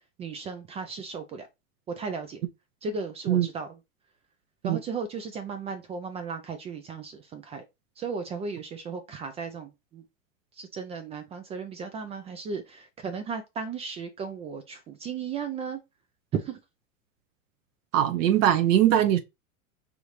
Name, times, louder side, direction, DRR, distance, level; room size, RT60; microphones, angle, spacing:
voice 1, 0.2-1.5 2.0-2.4 2.8-3.7 4.6-7.6 8.0-10.0 10.6-15.8 16.3-16.6, right 5 dB, 15° right, 0.3 m, -35 dB
voice 2, 17.9-19.2, right 11 dB, 60° right, 0.9 m, -21 dB
5.0 x 2.6 x 3.2 m
hypercardioid pair, 115°, 43 cm